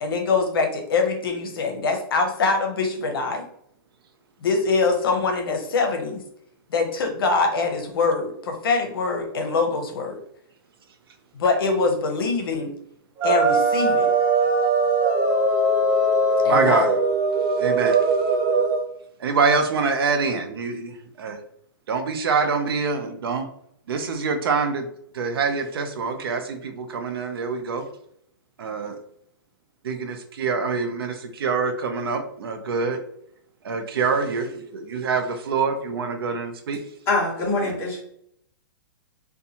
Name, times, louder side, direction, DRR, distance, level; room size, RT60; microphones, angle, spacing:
voice 1, 0.0-3.4 4.4-6.2 6.7-10.2 11.3-12.7 13.2-14.1 16.4-16.8, left 4 dB, 75° left, 4 dB, 0.7 m, -23 dB
sound 1, 13.2-18.8, right 2 dB, 25° right, 0.5 m, -20 dB
voice 2, 16.4-16.9 17.6-18.0 19.2-21.4 21.9-23.5 23.9-24.9 25.1-27.8 28.6-29.0 29.8-33.0 33.6-36.8 37.6-37.8, right 5 dB, 80° right, 6 dB, 0.6 m, -25 dB
voice 3, 37.1-38.0, left 3 dB, 20° left, -6 dB, 1.1 m, -23 dB
2.6 x 2.2 x 2.8 m, 0.68 s
hypercardioid pair, 155°, 12 cm